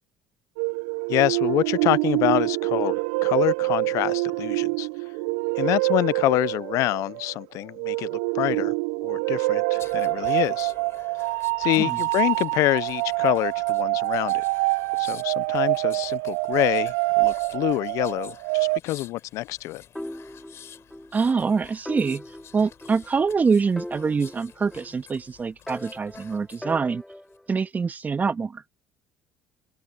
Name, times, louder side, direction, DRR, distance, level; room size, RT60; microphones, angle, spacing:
sound 1, 0.6-18.8, right 27 dB, 80° right, 0.4 m, -25 dB
voice 1, 1.1-4.9 5.6-8.7 9.0-10.7 11.6-14.4 15.0-19.8, left 17 dB, 65° left, 0.4 m, -26 dB
sound 2, 9.7-26.7 27.1-27.4, left 9 dB, 50° left, 4.1 m, -50 dB
sound 3, 20.0-21.1 21.4-21.5 21.9-23.4 23.8-25.2 25.7-27.5, left 1 dB, 5° left, 3.4 m, -40 dB
voice 2, 21.1-22.2 22.5-27.0 27.5-28.6, right 5 dB, 30° right, 1.6 m, -25 dB
open air
supercardioid pair, 80°, 6 cm